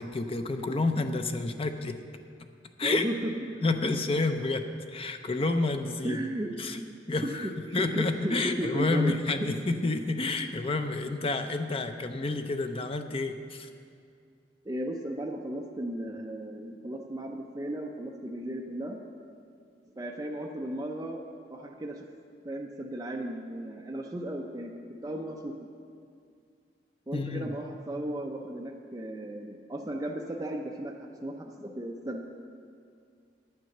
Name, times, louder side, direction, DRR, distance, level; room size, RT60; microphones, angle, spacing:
voice 1, 0.0-2.0 2.8-3.0 3.6-6.2 6.6-6.8 7.1-13.7 27.1-27.5, left 3 dB, 30° left, 7 dB, 0.6 m, -29 dB
voice 2, 2.8-3.3 6.0-6.5 7.2-9.1 14.6-19.0 20.0-21.2 21.5-22.1 22.4-24.7 25.0-25.6 27.1-32.2, right 1 dB, 20° right, 1 dB, 0.5 m, -35 dB
9.3 x 8.9 x 6.5 m, 2.3 s
head